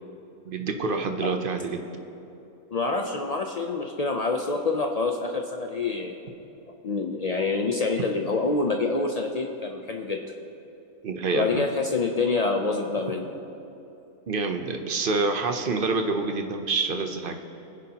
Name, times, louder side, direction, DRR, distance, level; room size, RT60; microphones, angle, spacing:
voice 1, 0.5-1.8 8.0-8.1 11.0-11.6 14.3-17.4, right 3 dB, 50° right, 5 dB, 0.7 m, -27 dB
voice 2, 2.7-6.2 6.8-10.2 11.3-13.3, left 3 dB, 80° left, 2 dB, 0.3 m, -26 dB
19.5 x 10.0 x 2.9 m, 2.8 s
omnidirectional pair, 1.5 m